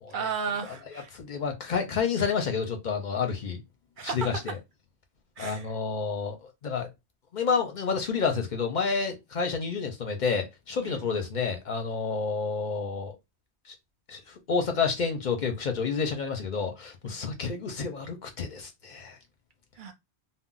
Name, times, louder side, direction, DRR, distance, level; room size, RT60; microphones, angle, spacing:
voice 1, 0.1-1.1 4.0-4.4 5.4-5.8 10.8-11.1 17.0-17.2 19.8-19.9, right 6 dB, 55° right, 0.7 m, -34 dB
voice 2, 1.1-3.6 4.0-4.6 5.4-6.9 7.3-13.1 13.7-13.8 14.1-19.2, left 5 dB, 50° left, 0.7 m, -29 dB
2.2 x 2.0 x 3.7 m
omnidirectional pair, 1.1 m